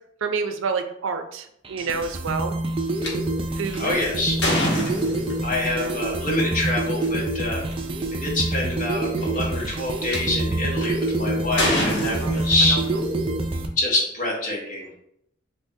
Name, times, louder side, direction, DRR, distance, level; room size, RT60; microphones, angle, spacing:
voice 1, 0.2-2.6 3.5-4.0 5.7-6.0 12.2-12.4 12.7-12.8, right 5 dB, 85° right, 8 dB, 0.4 m, -28 dB
sound 1, 1.7-13.7, right 2 dB, 25° right, 0.4 m, -27 dB
sound 2, 3.0-3.1 3.7-5.6 6.9-7.0 7.7-7.8 8.0-8.4 9.2-10.2 10.8-11.1 11.6-13.0, left 1 dB, 65° left, 1.0 m, -26 dB
voice 2, 3.8-4.4 5.4-7.7 8.2-12.8 13.8-14.9, left 2 dB, 40° left, -3 dB, 0.9 m, -25 dB
2.7 x 2.7 x 3.6 m, 0.74 s
head